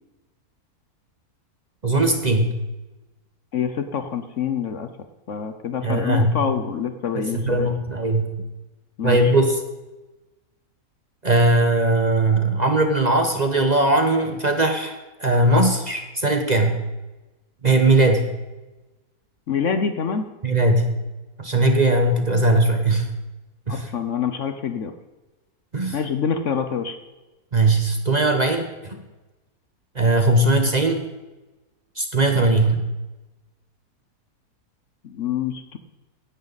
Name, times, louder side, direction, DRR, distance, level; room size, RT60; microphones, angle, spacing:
voice 1, 1.8-2.6 5.8-6.3 7.3-8.3 9.0-9.6 11.2-15.0 15.2-16.8 17.6-18.3 20.4-20.9 21.4-23.1 23.7-23.9 25.7-26.0 27.5-29.0 29.9-31.0 32.0-32.8, right 2 dB, 30° right, 5 dB, 1.0 m, -19 dB
voice 2, 3.5-4.9 5.3-7.7 9.0-9.2 19.5-20.3 23.7-24.9 25.9-27.0 35.0-35.8, left 7 dB, 60° left, 9 dB, 1.1 m, -26 dB
16.5 x 11.5 x 4.1 m, 1.1 s
omnidirectional pair, 1.6 m